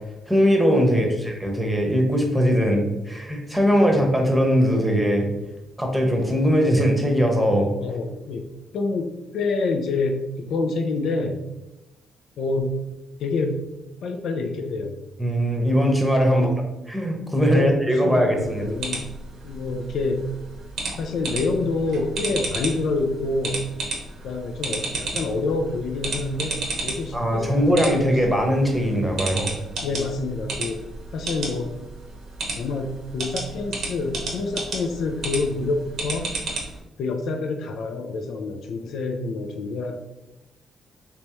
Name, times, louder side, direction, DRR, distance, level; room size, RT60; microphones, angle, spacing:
voice 1, 0.3-5.2 5.8-7.7 15.2-16.5 16.9-18.7 27.1-29.5, equal, 5° right, 1 dB, 0.9 m, -20 dB
voice 2, 0.9-1.2 7.8-8.5 8.7-11.4 12.4-12.8 13.2-13.6 14.0-15.0 16.3-16.7 17.5-17.8 18.0-19.1 19.4-20.3 21.0-23.6 24.2-28.0 28.3-28.4 29.8-30.8 31.1-31.7 32.6-36.3 37.0-40.0, left 3 dB, 70° left, 5 dB, 0.4 m, -27 dB
sound 1, 18.4-36.8, right 3 dB, 70° right, 0.9 m, -33 dB
3.4 x 3.0 x 3.0 m, 0.95 s
cardioid pair, 90°, 0 cm